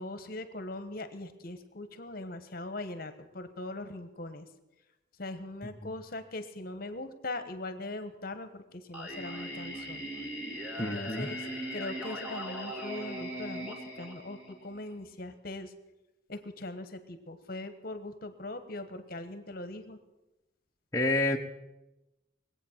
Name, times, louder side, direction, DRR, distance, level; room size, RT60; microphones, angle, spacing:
voice 1, 0.0-4.4 5.2-10.1 10.8-11.5 11.7-15.7 16.3-20.0, left 2 dB, 50° left, 10 dB, 1.1 m, -41 dB
Singing, 8.9-14.9, equal, 10° right, 2.5 m, -39 dB
voice 2, 10.8-11.3 20.9-21.4, left 2 dB, 15° left, -1 dB, 0.8 m, -28 dB
21.0 x 8.4 x 7.2 m, 1.0 s
head